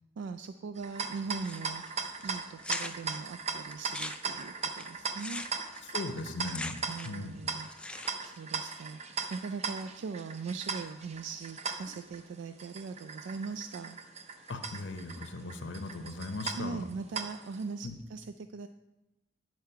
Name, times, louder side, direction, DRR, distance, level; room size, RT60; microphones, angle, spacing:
voice 1, 0.2-5.4 6.9-14.0 16.5-18.7, right 4 dB, 75° right, 9 dB, 0.3 m, -40 dB
sound 1, 0.7-17.6, right 5 dB, 35° right, 0.6 m, -39 dB
sound 2, 1.4-1.9 2.2-2.3 2.6-3.2 3.7-7.3 7.5-8.4, left 2 dB, 5° left, 0.3 m, -40 dB
voice 2, 5.8-7.4 14.5-16.8 17.8-17.9, left 2 dB, 85° left, 7 dB, 0.7 m, -38 dB
9.6 x 4.6 x 5.6 m, 1.0 s
head